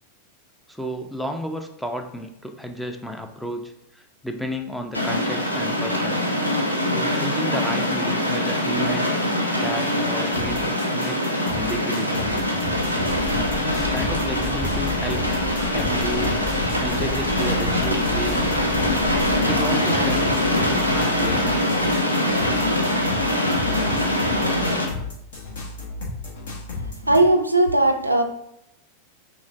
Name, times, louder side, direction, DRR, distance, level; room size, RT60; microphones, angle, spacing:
voice 1, 0.7-6.2 6.8-9.1 9.6-11.2 11.5-12.5 13.6-15.4 15.7-16.4 16.8-18.6 19.5-22.0, equal, ahead, 5 dB, 0.5 m, -32 dB
sound 1, 4.9-24.9, left 1 dB, 85° left, 0.7 m, -23 dB
sound 2, 10.3-27.2, left 3 dB, 60° left, 1.1 m, -33 dB
sound 3, 13.1-19.4, left 4 dB, 20° left, 1.6 m, -32 dB
voice 2, 27.1-28.2, right 1 dB, 85° right, 4 dB, 0.5 m, -18 dB
6.2 x 2.1 x 3.5 m, 0.78 s
figure-of-eight pair, 90°, 0 cm